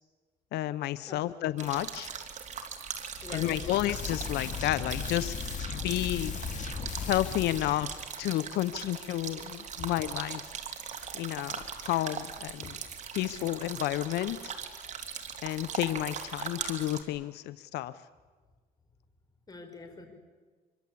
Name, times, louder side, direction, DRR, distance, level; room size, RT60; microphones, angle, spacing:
voice 1, 0.5-2.1 3.3-5.4 5.7-6.6 7.1-10.4 11.1-12.7 13.1-14.5 15.4-17.9, left 14 dB, 80° left, 15 dB, 0.7 m, -31 dB
sound 1, 1.6-17.0, right 6 dB, 45° right, 3.2 m, -40 dB
sound 2, 3.2-8.0, left 6 dB, 45° left, 2.2 m, -37 dB
voice 2, 3.2-3.7 19.5-20.1, left 2 dB, 25° left, 5 dB, 5.3 m, -44 dB
25.5 x 24.0 x 8.5 m, 1.4 s
cardioid pair, 110°, 17 cm